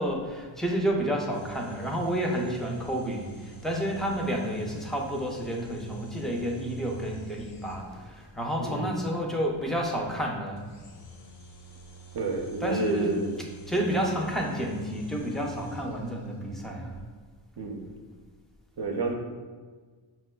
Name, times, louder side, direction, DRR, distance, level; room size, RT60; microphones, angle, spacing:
voice 1, 0.0-10.7 12.6-13.1 13.7-17.0, equal, ahead, 0 dB, 0.3 m, -30 dB
sound 1, 1.3-8.2 10.6-16.3, right 5 dB, 85° left, 0.8 m, -47 dB
voice 2, 8.6-9.0 12.1-13.3 17.6-17.9 18.8-19.1, right 3 dB, 55° right, 1 dB, 0.5 m, -30 dB
5.3 x 2.1 x 2.2 m, 1.4 s
cardioid pair, 100°, 49 cm